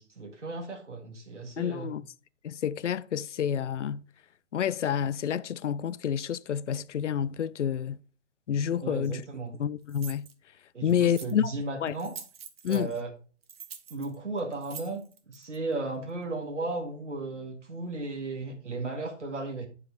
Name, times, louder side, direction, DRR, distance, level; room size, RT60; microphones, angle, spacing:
voice 1, 0.0-1.9 8.8-9.6 10.7-12.2 12.7-13.1 13.9-19.7, right 3 dB, 85° right, 1.6 m, -35 dB
voice 2, 1.6-2.0 2.4-4.0 4.5-8.0 8.5-9.2 9.6-10.3 10.8-11.5 11.8-11.9 12.6-12.9, left 9 dB, 80° left, 0.5 m, -29 dB
sound 1, 9.0-9.1 9.9-10.3 10.9-11.5 11.9-13.0 13.4-15.6, right 7 dB, 55° right, 1.2 m, -45 dB
9.7 x 4.9 x 4.3 m
figure-of-eight pair, 130°, 35 cm